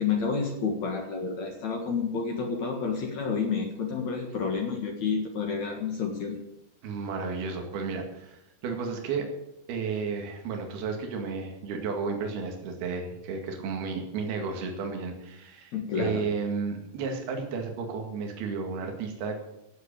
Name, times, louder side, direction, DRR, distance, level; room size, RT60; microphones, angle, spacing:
voice 1, 0.0-6.4 15.7-16.2, left 5 dB, 55° left, 2 dB, 2.7 m, -29 dB
voice 2, 6.8-9.3 9.7-19.4, right 5 dB, 80° right, 3 dB, 4.0 m, -33 dB
16.0 x 7.9 x 8.8 m, 0.85 s
omnidirectional pair, 4.4 m